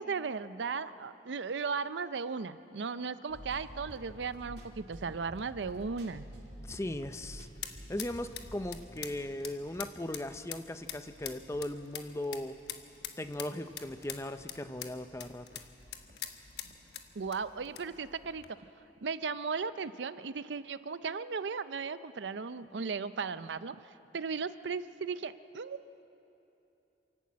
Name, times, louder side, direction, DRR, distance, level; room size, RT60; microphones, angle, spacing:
voice 1, 0.0-6.3 17.2-18.6 19.0-23.8 24.1-25.8, right 5 dB, 85° right, 14 dB, 0.5 m, -36 dB
sound 1, 3.3-9.0, equal, 65° right, 2.2 m, -49 dB
voice 2, 6.6-7.5 7.9-12.6 13.2-15.7, left 1 dB, 15° left, 10 dB, 0.5 m, -38 dB
sound 2, 6.9-18.5, left 9 dB, 70° left, 1.1 m, -46 dB
sound 3, 8.6-8.8 9.1-9.2 9.8-9.9 10.3-10.4 10.9-11.0 11.5-11.6 12.1-12.3 12.7-12.8 13.3-13.4 13.9-14.0 14.4-14.5 14.9-15.0 15.5-15.6 16.1-16.3 16.7-16.8 17.2-17.3 17.8-17.9, right 1 dB, 50° right, 1.6 m, -61 dB
27.5 x 11.5 x 8.5 m, 2.9 s
head